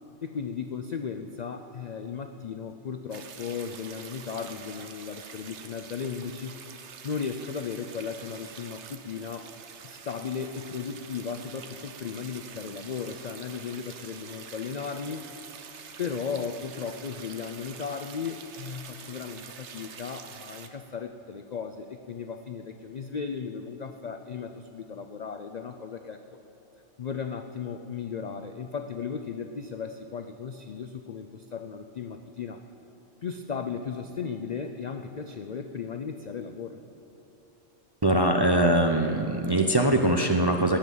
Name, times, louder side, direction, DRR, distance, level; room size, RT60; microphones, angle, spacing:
voice 1, 0.2-6.6 7.0-9.5 9.8-15.3 16.0-26.2 27.0-32.6 33.2-36.8, left 6 dB, 60° left, 6 dB, 0.4 m, -36 dB
sound 1, 3.1-20.7, right 6 dB, 65° right, 1.1 m, -46 dB
voice 2, 38.0-40.8, right 1 dB, 30° right, 3 dB, 0.4 m, -22 dB
16.5 x 5.8 x 9.2 m, 3.0 s
omnidirectional pair, 1.3 m